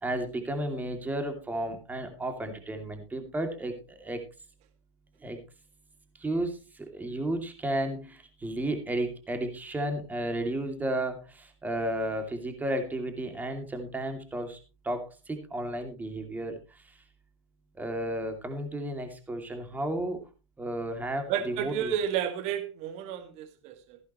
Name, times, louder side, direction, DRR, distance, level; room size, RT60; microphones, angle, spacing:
voice 1, 0.0-4.2 5.2-5.4 6.2-14.6 14.8-17.0 17.7-20.2 20.6-21.9, right 1 dB, 10° right, 2.7 m, -33 dB
voice 2, 21.3-24.0, right 9 dB, 45° right, 2.0 m, -31 dB
15.0 x 11.5 x 3.1 m
hypercardioid pair, 110°, 16 cm